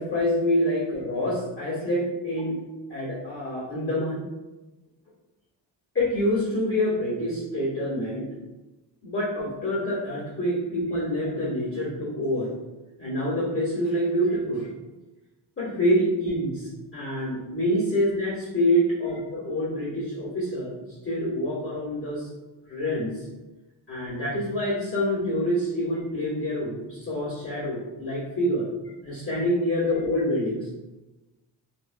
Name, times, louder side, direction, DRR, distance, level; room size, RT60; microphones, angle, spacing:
voice 1, 0.0-2.6 2.9-4.3 5.9-8.3 9.0-12.5 13.0-14.7 15.6-20.8 21.0-22.3 22.7-23.3 23.9-28.7 29.0-30.7, equal, 30° left, -9 dB, 1.3 m, -26 dB
3.1 x 2.7 x 2.2 m, 1.1 s
cardioid pair, 65°, 44 cm